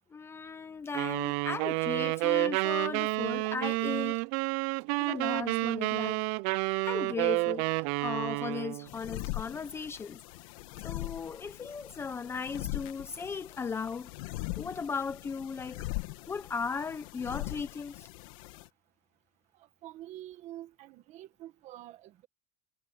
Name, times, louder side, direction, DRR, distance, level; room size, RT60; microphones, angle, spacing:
voice 1, 0.1-4.2 5.0-6.3 6.9-10.2 10.8-14.1 14.6-15.9 16.3-18.1, left 5 dB, 15° left, 0.8 m, -37 dB
sound 1, 0.9-8.9, right 24 dB, 60° right, 0.7 m, -30 dB
sound 2, 8.9-18.7, left 20 dB, 80° left, 1.7 m, -41 dB
voice 2, 19.6-22.3, right 14 dB, 40° right, 1.8 m, -47 dB
cardioid pair, 175°, 17 cm